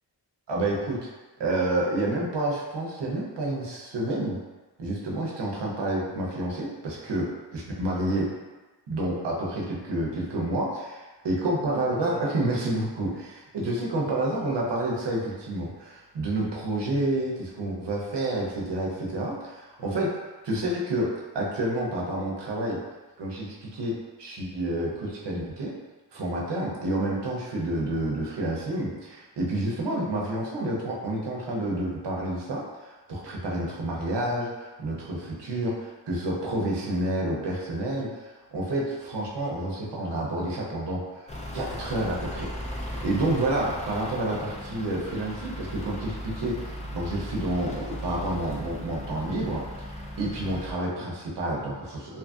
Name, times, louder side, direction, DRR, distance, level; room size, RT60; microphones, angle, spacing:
voice 1, 0.5-1.1 1.4-4.4 4.8-8.3 8.9-20.1 20.4-22.8 23.2-25.7 26.1-42.5 42.7-52.2, right 1 dB, 80° right, -3 dB, 0.7 m, -29 dB
Truck / Idling, 41.3-50.7, equal, 15° left, 0.4 m, -37 dB
2.7 x 2.5 x 2.3 m, 1.2 s
cardioid pair, 55°, 41 cm